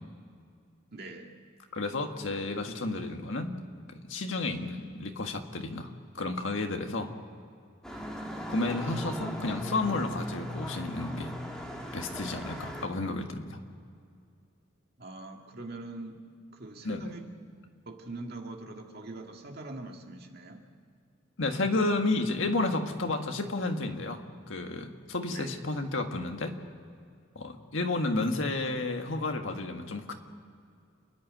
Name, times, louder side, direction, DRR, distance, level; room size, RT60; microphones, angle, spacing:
voice 1, 0.9-1.4 15.0-16.3 16.5-17.3 17.8-20.6 25.3-25.6, right 2 dB, 55° right, 3 dB, 2.1 m, -42 dB
voice 2, 1.7-3.6 3.9-7.1 8.5-11.3 11.9-13.6 16.8-17.0 21.4-24.2 24.5-26.5 27.3-30.1, left 2 dB, 80° left, 4 dB, 1.7 m, -31 dB
sound 1, 7.8-12.9, equal, 5° left, 2.2 m, -38 dB
28.5 x 10.5 x 9.1 m, 2.3 s
head